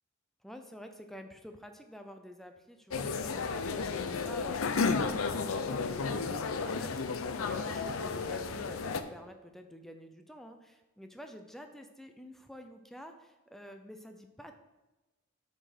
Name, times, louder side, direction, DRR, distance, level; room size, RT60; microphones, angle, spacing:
voice 1, 0.4-14.6, equal, ahead, 6 dB, 0.5 m, -49 dB
sound 1, 2.9-9.0, left 4 dB, 85° left, 0.5 m, -33 dB
7.5 x 4.4 x 5.1 m, 1.1 s
head